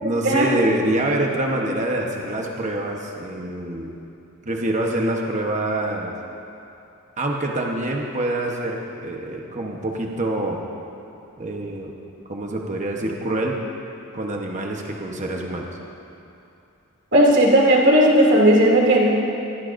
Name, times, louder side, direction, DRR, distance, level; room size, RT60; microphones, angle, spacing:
voice 1, 0.0-3.9 4.5-6.1 7.2-10.6 11.4-11.9 12.3-13.6 14.1-15.7, right 1 dB, 35° right, 0 dB, 1.0 m, -25 dB
voice 2, 17.1-19.1, right 1 dB, 55° right, -4 dB, 2.7 m, -15 dB
23.0 x 15.0 x 2.6 m, 2.7 s
head